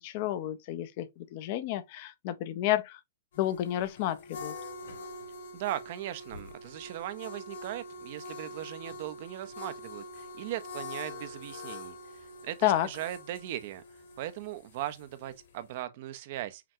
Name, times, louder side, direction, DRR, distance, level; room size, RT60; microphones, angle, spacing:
voice 1, 0.0-3.0 3.4-4.5 12.6-12.9, left 13 dB, 40° left, 0.5 m, -30 dB
sound 1, 3.3-15.8, left 2 dB, 65° left, 2.1 m, -45 dB
voice 2, 5.5-13.8 14.2-16.6, right 13 dB, 45° right, 0.5 m, -38 dB
5.8 x 2.2 x 2.7 m
hypercardioid pair, 145°, 0 cm